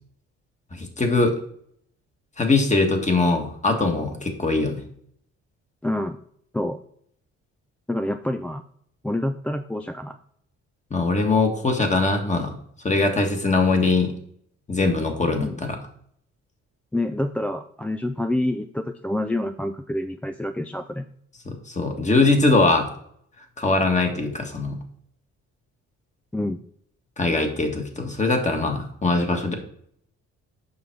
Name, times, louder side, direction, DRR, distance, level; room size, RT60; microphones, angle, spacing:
voice 1, 0.7-1.3 2.4-4.8 10.9-12.5 12.8-14.1 14.7-15.8 21.4-22.9 23.6-24.8 27.2-29.6, left 3 dB, 25° left, 3 dB, 1.7 m, -21 dB
voice 2, 5.8-6.2 6.5-6.8 7.9-8.6 9.0-10.2 15.4-15.6 16.9-21.1 26.3-26.6, left 1 dB, 5° left, 8 dB, 0.3 m, -27 dB
7.2 x 5.7 x 4.6 m, 0.67 s
cardioid pair, 90°, 30 cm